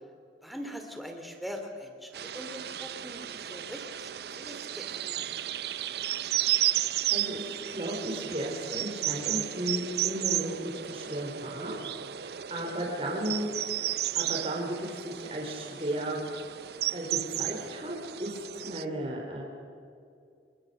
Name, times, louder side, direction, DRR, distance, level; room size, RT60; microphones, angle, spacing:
voice 1, 0.4-5.2, equal, ahead, 4 dB, 2.8 m, -42 dB
sound 1, 2.1-18.8, right 13 dB, 65° right, 0.6 m, -33 dB
voice 2, 7.1-11.7 12.5-13.5 14.1-16.2 16.9-19.4, right 1 dB, 35° right, -1 dB, 3.9 m, -34 dB
28.0 x 21.0 x 6.7 m, 2.3 s
head